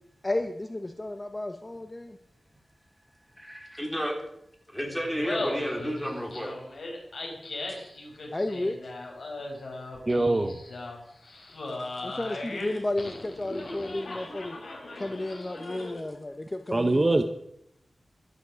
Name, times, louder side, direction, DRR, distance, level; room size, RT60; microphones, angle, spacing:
voice 1, 0.2-2.2 8.3-8.8 12.0-14.6 15.0-17.2, left 2 dB, 25° left, 7 dB, 0.9 m, -32 dB
voice 2, 3.4-4.1 4.7-6.5, equal, 5° left, 1 dB, 3.6 m, -31 dB
Laughter, 5.1-16.1, left 2 dB, 80° left, 4.3 m, -38 dB
voice 3, 10.1-10.6 16.7-17.2, right 2 dB, 30° right, 8 dB, 0.9 m, -23 dB
13.5 x 12.5 x 6.2 m, 0.76 s
wide cardioid pair, 110°, 0 cm